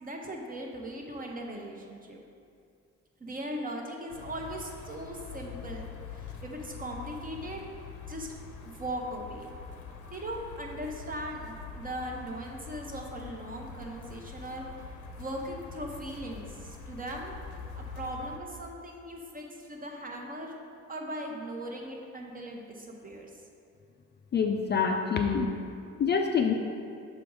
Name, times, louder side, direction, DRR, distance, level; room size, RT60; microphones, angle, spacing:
voice 1, 0.0-2.2 3.2-7.6 8.1-8.3 8.6-9.5 10.1-14.6 15.2-17.4 17.7-20.6 20.9-23.3, right 1 dB, 30° right, 1 dB, 0.8 m, -39 dB
sound 1, 4.1-18.4, left 5 dB, 80° left, 0.7 m, -44 dB
voice 2, 24.3-25.5 26.0-26.5, left 6 dB, 35° left, 3 dB, 0.4 m, -26 dB
6.1 x 3.4 x 4.7 m, 2.4 s
cardioid pair, 90°, 30 cm